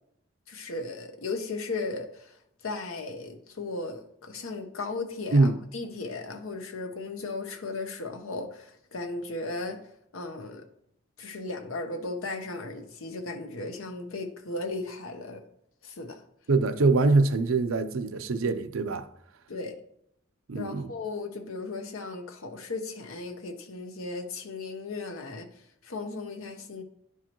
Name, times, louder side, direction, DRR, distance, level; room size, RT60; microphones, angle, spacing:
voice 1, 0.5-9.8 10.1-10.7 11.2-15.4 15.8-16.2 19.5-19.8 20.5-26.8, left 3 dB, 85° left, 0.9 m, -36 dB
voice 2, 16.5-19.1 20.5-20.9, right 3 dB, 80° right, 0.5 m, -23 dB
10.5 x 4.8 x 2.9 m
head